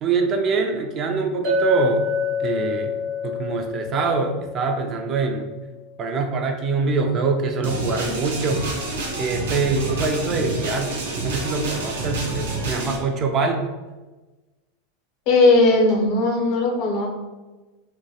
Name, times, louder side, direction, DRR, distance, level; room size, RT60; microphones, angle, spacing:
voice 1, 0.0-2.1 2.4-3.0 3.2-5.5 6.0-8.6 9.2-10.9 11.2-13.6, right 4 dB, 40° right, 4 dB, 0.3 m, -24 dB
Chink clink, 1.4-5.9, left 4 dB, 65° right, 1.0 m, -27 dB
sound 1, 7.6-13.0, right 2 dB, 90° right, 0.6 m, -28 dB
voice 2, 15.3-17.1, left 2 dB, 55° left, 0 dB, 0.6 m, -17 dB
2.2 x 2.1 x 2.7 m, 1.2 s
hypercardioid pair, 110°, 0 cm